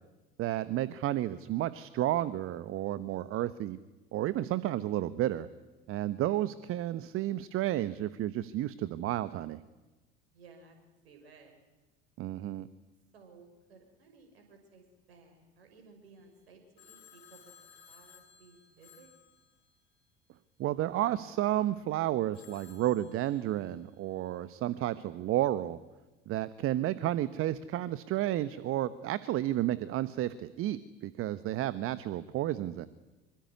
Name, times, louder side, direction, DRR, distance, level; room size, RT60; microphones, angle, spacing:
voice 1, 0.4-3.8 4.1-5.5 5.9-9.6 12.2-12.7 20.6-25.8 26.3-32.9, right 13 dB, 45° right, 16 dB, 1.1 m, -31 dB
voice 2, 10.3-10.8 11.0-11.5 13.1-17.5 17.9-19.1, right 4 dB, 70° right, 5 dB, 6.1 m, -57 dB
Telephone, 16.8-20.1 22.3-23.9, left 8 dB, 70° left, 4.7 m, -58 dB
26.0 x 24.0 x 9.7 m, 1.1 s
figure-of-eight pair, 65°, 31 cm